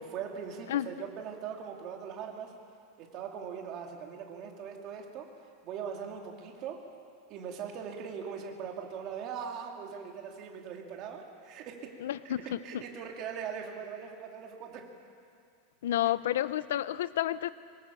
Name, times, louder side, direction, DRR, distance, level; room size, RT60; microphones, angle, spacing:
voice 1, 0.0-2.5 3.0-5.3 5.6-6.8 7.3-11.9 12.2-14.9, right 7 dB, 30° right, 1 dB, 2.8 m, -40 dB
voice 2, 0.7-1.1 12.0-12.6 15.8-17.5, left 12 dB, 85° left, 16 dB, 0.7 m, -30 dB
24.5 x 24.0 x 7.1 m, 2.3 s
supercardioid pair, 180°, 0 cm